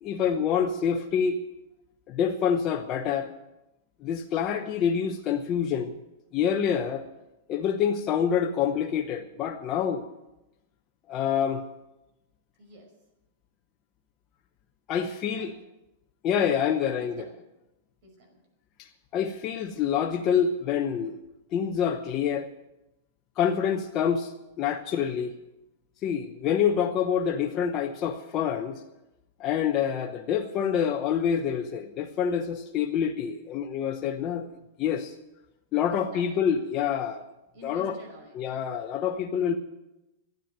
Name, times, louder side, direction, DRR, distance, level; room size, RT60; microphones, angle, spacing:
voice 1, 0.0-1.4 2.1-3.3 4.0-5.9 6.3-7.0 7.5-10.0 11.1-11.6 14.9-15.5 16.2-17.2 18.8-21.2 21.5-22.5 23.4-25.3 26.0-28.8 29.4-34.5 34.8-35.1 35.7-37.2 37.6-38.0 38.3-39.6, left 8 dB, 30° left, 2 dB, 0.9 m, -27 dB
voice 2, 12.6-12.9 15.4-15.6 16.6-17.4 18.0-18.4 35.9-36.4 37.5-38.4, right 1 dB, 50° right, 3 dB, 5.4 m, -49 dB
13.5 x 9.1 x 9.3 m, 0.95 s
supercardioid pair, 160°, 0 cm